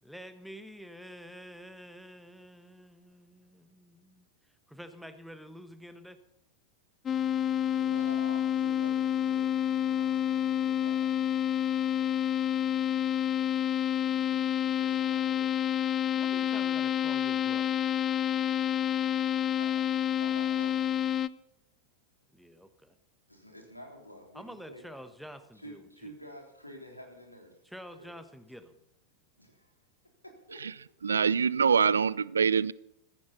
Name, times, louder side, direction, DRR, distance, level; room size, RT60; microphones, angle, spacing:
voice 1, 0.0-4.3 4.7-6.2 14.4-14.7 16.2-17.8 22.3-23.0 24.3-26.1 27.6-28.7, equal, ahead, 10 dB, 1.3 m, -48 dB
sound 1, 7.1-21.3, left 10 dB, 25° left, 0.5 m, -28 dB
voice 2, 7.7-12.2 12.4-13.4 13.9-15.5 16.6-16.9 19.6-19.7 20.2-21.0 23.3-24.8 25.6-27.6 27.9-28.1 29.4-29.7 30.2-30.9 31.2-31.3, equal, 90° left, 1 dB, 3.6 m, -50 dB
voice 3, 31.0-32.7, right 6 dB, 70° right, 22 dB, 0.4 m, -24 dB
15.5 x 15.0 x 4.1 m, 0.79 s
figure-of-eight pair, 90°, 0 cm